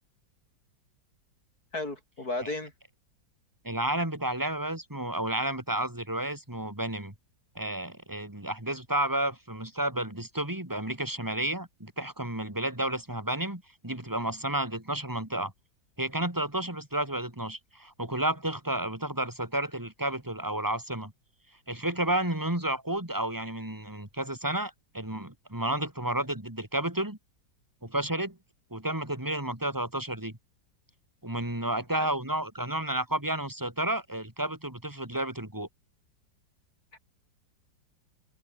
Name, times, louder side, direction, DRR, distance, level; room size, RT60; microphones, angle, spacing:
voice 1, 1.7-2.7 32.0-32.1 36.9-37.0, left 2 dB, 55° left, 6.6 m, -34 dB
voice 2, 3.6-7.1 7.6-15.5 16.0-21.1 21.7-27.2 27.8-28.4 28.7-30.3 31.2-35.7, right 1 dB, 10° right, 3.8 m, -31 dB
omnidirectional pair, 2.0 m